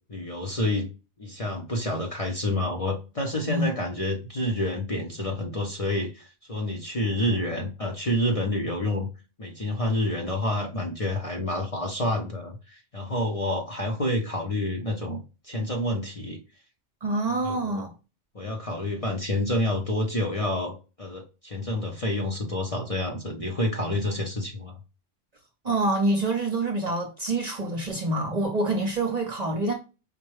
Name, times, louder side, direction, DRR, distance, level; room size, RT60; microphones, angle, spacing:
voice 1, 0.1-0.9 1.2-9.1 9.4-16.4 17.4-17.8 18.3-24.7, left 1 dB, 35° left, 0.7 m, -28 dB
voice 2, 17.0-17.9 25.6-29.7, right 2 dB, 40° right, 0.7 m, -26 dB
5.0 x 2.2 x 3.1 m
omnidirectional pair, 1.2 m